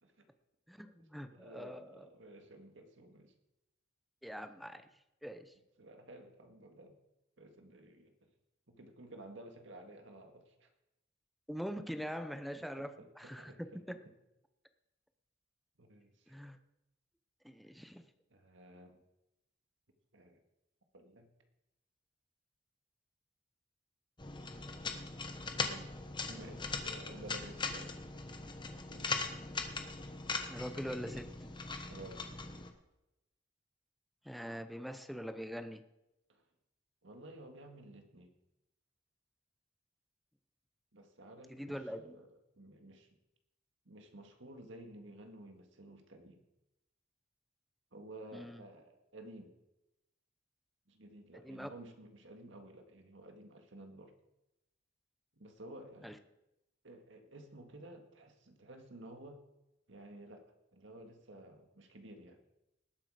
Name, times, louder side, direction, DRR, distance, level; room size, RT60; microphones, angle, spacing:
voice 1, 0.7-2.1 4.2-4.9 5.2-5.5 11.5-12.9 13.2-13.5 13.9-14.0 16.3-16.6 17.4-18.0 30.5-31.5 34.2-35.8 41.5-42.1 48.3-48.6 51.4-51.7 56.0-56.2, equal, ahead, 9 dB, 0.6 m, -43 dB
voice 2, 1.3-3.3 5.8-7.0 7.4-8.3 8.7-10.7 12.8-13.6 13.9-14.0 15.8-16.3 18.3-19.0 20.1-20.4 20.9-21.3 25.6-25.9 26.3-28.4 28.9-29.2 31.9-32.3 36.3-36.4 37.0-38.3 40.9-42.3 42.6-43.1 43.9-46.4 47.9-49.6 50.9-54.1 55.3-56.2 56.8-59.4 59.9-62.4, right 1 dB, 75° right, 5 dB, 1.9 m, -53 dB
sound 1, 24.2-32.7, left 4 dB, 25° left, 1.1 m, -40 dB
19.0 x 8.3 x 4.9 m, 0.92 s
head